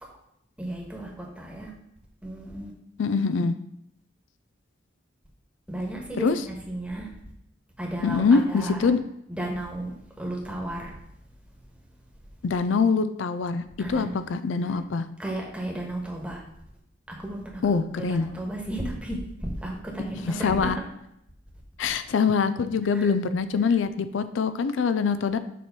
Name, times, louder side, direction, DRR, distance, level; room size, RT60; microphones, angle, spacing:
voice 1, 0.6-1.7 2.2-2.7 5.7-7.1 7.8-8.9 9.3-10.9 13.8-14.1 15.2-16.4 17.1-17.6 18.0-20.7 22.9-23.1, right 1 dB, 5° right, -2 dB, 1.3 m, -34 dB
voice 2, 3.0-3.5 6.2-6.4 8.0-9.0 12.4-13.6 13.9-15.1 17.6-18.3 20.2-20.8 21.8-25.4, left 5 dB, 80° left, 12 dB, 0.4 m, -24 dB
6.9 x 3.2 x 5.9 m, 0.78 s
head